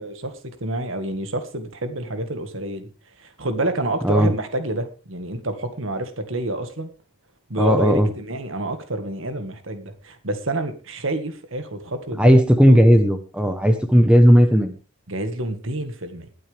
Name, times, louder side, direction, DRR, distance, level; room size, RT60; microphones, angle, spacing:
voice 1, 0.0-2.9 3.2-6.9 7.5-12.4 12.7-12.8 13.6-13.7 15.1-16.3, right 1 dB, 65° right, 9 dB, 1.8 m, -28 dB
voice 2, 7.6-8.1 12.2-14.7, equal, 5° right, 7 dB, 1.0 m, -15 dB
20.5 x 8.8 x 3.5 m, 0.34 s
head